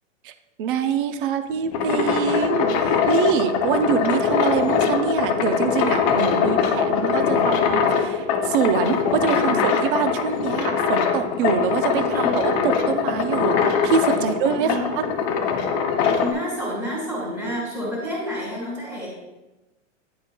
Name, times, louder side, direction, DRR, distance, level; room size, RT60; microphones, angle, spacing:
voice 1, 0.6-15.1, right 7 dB, 45° right, 9 dB, 0.6 m, -25 dB
sound 1, 1.5-16.3, left 6 dB, 30° left, 0.5 m, -22 dB
voice 2, 9.4-9.7 11.9-12.3 14.1-14.3 14.6-15.0 16.2-19.1, equal, ahead, -6 dB, 1.6 m, -30 dB
10.0 x 4.3 x 2.2 m, 1.1 s
hypercardioid pair, 145°, 38 cm